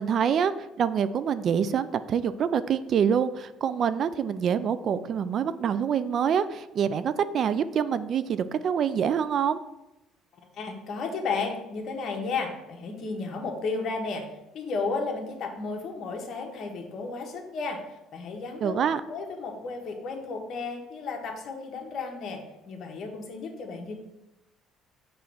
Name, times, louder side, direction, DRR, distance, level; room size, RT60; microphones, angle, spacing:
voice 1, 0.0-9.6 18.6-19.0, right 7 dB, 50° right, 14 dB, 0.3 m, -26 dB
voice 2, 10.5-14.2 14.5-18.8 19.1-23.9, left 4 dB, 55° left, 2 dB, 1.3 m, -33 dB
6.9 x 3.1 x 6.0 m, 0.93 s
cardioid pair, 115°, 0 cm